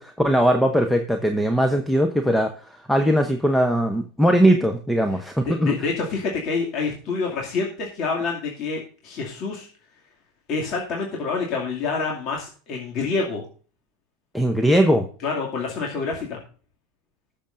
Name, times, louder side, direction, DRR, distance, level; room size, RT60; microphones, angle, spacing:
voice 1, 0.0-2.5 2.9-5.7 14.3-15.1, equal, ahead, 5 dB, 0.8 m, -20 dB
voice 2, 5.5-9.7 10.5-13.4 15.2-16.4, left 4 dB, 45° left, -2 dB, 2.4 m, -27 dB
20.0 x 6.8 x 2.6 m, 0.40 s
supercardioid pair, 135°, 0 cm